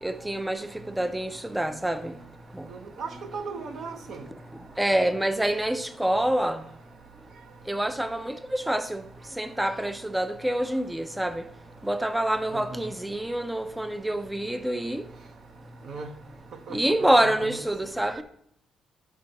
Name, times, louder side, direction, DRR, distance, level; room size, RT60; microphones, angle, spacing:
voice 1, 0.0-2.3 2.5-2.7 4.5-6.7 7.6-11.5 11.8-15.1 16.7-18.2, right 1 dB, 5° right, 0.4 m, -27 dB
voice 2, 2.7-4.2 12.5-12.8 15.9-16.1 16.7-17.6, right 4 dB, 65° right, 0.8 m, -37 dB
10.5 x 5.7 x 2.9 m
cardioid pair, 90°, 0 cm